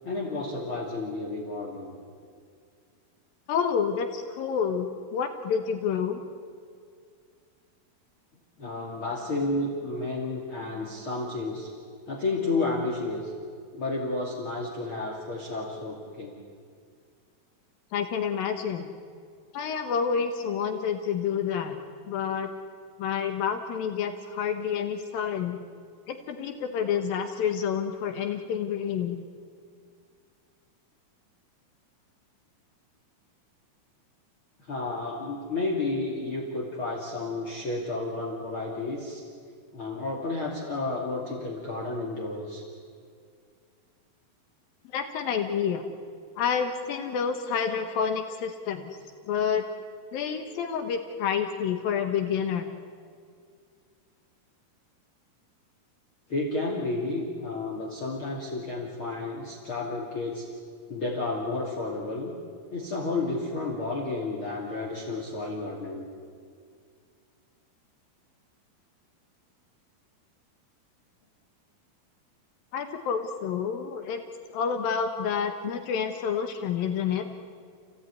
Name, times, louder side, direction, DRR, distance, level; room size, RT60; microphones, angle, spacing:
voice 1, 0.0-1.9 8.6-11.7 12.1-13.3 13.7-16.4 34.6-39.2 39.7-42.6 56.3-60.5 60.9-62.3 62.7-66.0, left 2 dB, 40° left, -1 dB, 3.0 m, -31 dB
voice 2, 3.5-6.2 17.9-18.9 19.5-21.8 22.1-22.5 23.0-25.6 26.1-29.2 44.9-45.8 46.4-48.8 49.3-49.6 50.1-52.7 72.7-74.2 74.5-77.3, left 7 dB, 75° left, 6 dB, 3.0 m, -28 dB
29.5 x 17.0 x 9.8 m, 2.2 s
omnidirectional pair, 4.3 m